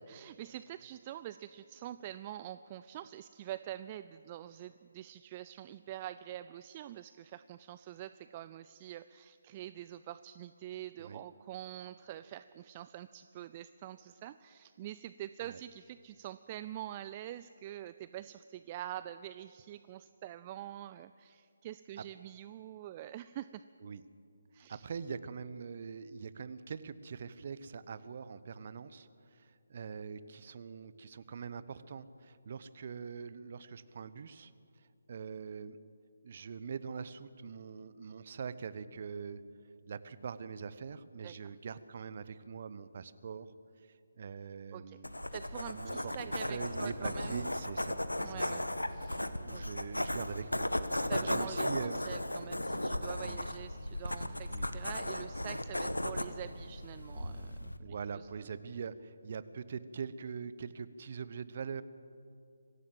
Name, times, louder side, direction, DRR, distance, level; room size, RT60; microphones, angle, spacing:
voice 1, 0.1-23.6 24.5-24.9 41.2-41.4 44.7-45.0 45.3-47.5 48.2-49.6 51.1-58.3, right 12 dB, 25° right, 14 dB, 0.4 m, -46 dB
voice 2, 24.7-34.5 35.1-35.8 36.2-39.4 39.9-43.5 44.2-45.1 45.7-46.1 46.5-48.0 48.2-48.6 49.5-50.7 51.0-52.0 53.1-53.4 54.5-54.7 57.8-61.8, right 6 dB, 45° right, 15 dB, 1.0 m, -43 dB
sound 1, 45.0-57.8, left 1 dB, 85° left, 1.4 m, -36 dB
24.5 x 15.5 x 7.8 m, 2.4 s
figure-of-eight pair, 150°, 0 cm